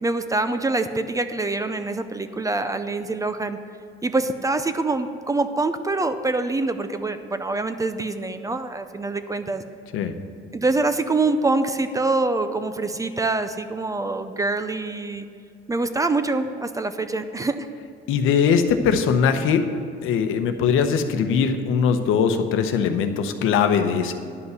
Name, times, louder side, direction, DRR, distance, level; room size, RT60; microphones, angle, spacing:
voice 1, 0.0-3.6 4.0-9.6 10.5-15.3 15.7-17.7, right 3 dB, 15° right, 10 dB, 0.4 m, -25 dB
voice 2, 18.1-19.7 20.0-24.1, left 6 dB, 75° left, 8 dB, 0.9 m, -21 dB
10.5 x 5.6 x 7.9 m, 2.5 s
cardioid pair, 125°, 21 cm